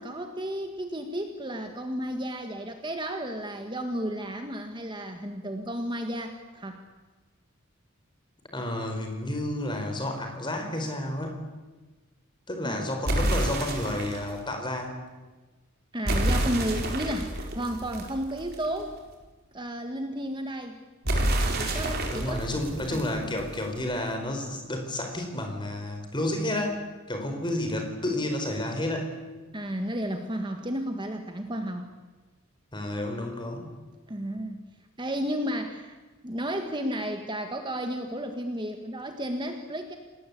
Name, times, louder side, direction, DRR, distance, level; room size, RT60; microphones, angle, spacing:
voice 1, 0.0-6.8 12.6-12.9 15.9-18.9 19.5-20.8 21.6-22.4 22.9-23.0 29.5-31.9 34.1-34.6 35.0-36.0 36.2-40.0, equal, 20° right, 5 dB, 1.7 m, -33 dB
voice 2, 8.5-11.4 12.5-15.0 22.1-26.8 27.1-29.2 32.7-33.7, left 1 dB, 20° left, 4 dB, 4.7 m, -31 dB
sound 1, 13.1-14.3 16.1-18.8 21.1-23.8, right 1 dB, 45° right, 4.5 m, -28 dB
29.0 x 20.0 x 8.5 m, 1.2 s
head